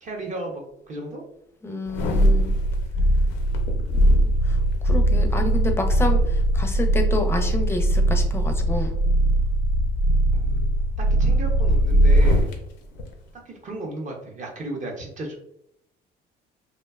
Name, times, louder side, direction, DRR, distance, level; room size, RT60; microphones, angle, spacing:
voice 1, 0.0-1.2 10.3-12.5 13.5-15.4, right 2 dB, 40° right, 0 dB, 0.6 m, -34 dB
voice 2, 1.6-2.5 3.8-4.6 4.8-9.0, left 1 dB, 15° left, 4 dB, 0.5 m, -29 dB
sound 1, 1.9-12.5 13.0-13.1, right 1 dB, 80° left, 0.5 m, -20 dB
2.6 x 2.2 x 2.2 m, 0.77 s
cardioid pair, 90°, 19 cm